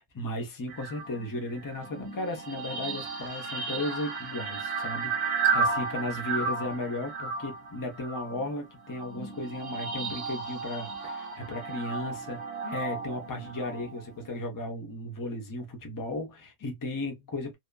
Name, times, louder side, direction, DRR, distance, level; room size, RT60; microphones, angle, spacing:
voice 1, 0.1-17.5, left 1 dB, 30° left, 0.4 m, -35 dB
sound 1, 0.7-14.4, right 4 dB, 55° right, 0.9 m, -34 dB
2.8 x 2.3 x 2.2 m
omnidirectional pair, 1.5 m